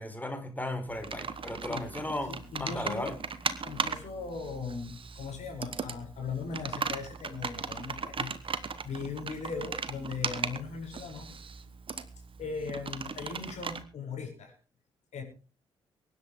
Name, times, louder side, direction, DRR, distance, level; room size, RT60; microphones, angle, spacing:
voice 1, 0.0-2.3 2.6-3.1, left 1 dB, 10° left, 4.4 m, -35 dB
Computer keyboard, 0.9-13.8, right 5 dB, 40° right, 1.7 m, -38 dB
voice 2, 2.3-3.2 3.6-11.3 11.6-11.7 12.4-14.5 15.1-15.2, left 5 dB, 55° left, 7.3 m, -39 dB
24.0 x 10.5 x 3.6 m
figure-of-eight pair, 40°, 14 cm